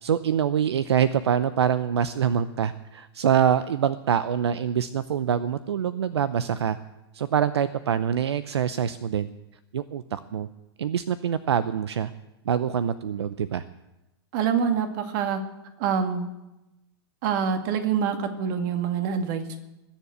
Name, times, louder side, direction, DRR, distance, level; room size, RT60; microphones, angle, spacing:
voice 1, 0.0-6.8 7.1-9.3 9.7-10.5 10.8-12.1 12.4-13.6, right 8 dB, 80° right, 14 dB, 0.7 m, -25 dB
voice 2, 14.3-15.4 15.8-16.3 17.2-19.6, right 7 dB, 50° right, 6 dB, 2.3 m, -26 dB
21.0 x 7.3 x 8.1 m, 0.99 s
hypercardioid pair, 115°, 14 cm